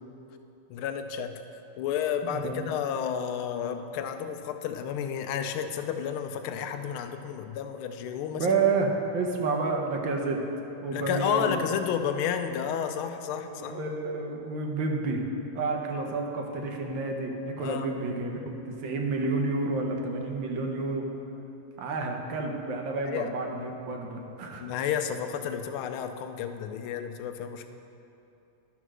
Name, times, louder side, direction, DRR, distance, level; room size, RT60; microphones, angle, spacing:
voice 1, 0.7-1.4 1.8-8.6 10.9-13.8 17.6-17.9 23.0-23.3 24.6-27.7, left 8 dB, 80° left, 7 dB, 1.4 m, -31 dB
voice 2, 2.2-2.6 8.4-10.4 10.8-11.6 13.4-15.2 15.5-18.4 18.8-21.1 21.8-24.7, right 3 dB, 65° right, 1 dB, 1.5 m, -30 dB
11.5 x 4.4 x 6.1 m, 2.9 s
omnidirectional pair, 2.4 m